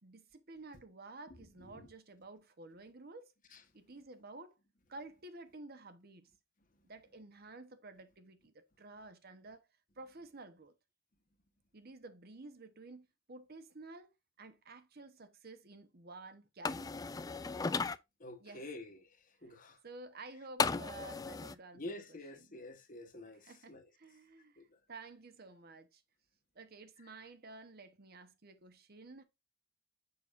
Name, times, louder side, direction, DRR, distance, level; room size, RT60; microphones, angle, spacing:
voice 1, 0.0-3.3 3.7-4.6 4.9-6.3 6.8-9.6 10.0-10.7 11.7-17.0 18.4-18.7 19.4-19.6 19.8-21.8 22.1-22.6 23.3-26.0 26.5-29.2, right 3 dB, 50° right, 1.0 m, -52 dB
sound 1, 16.6-18.0 20.6-21.5, left 4 dB, 20° left, 0.3 m, -35 dB
voice 2, 18.2-19.0 19.4-19.8 21.7-23.8 24.6-24.7, left 1 dB, 40° left, 1.2 m, -47 dB
6.8 x 6.1 x 2.5 m
head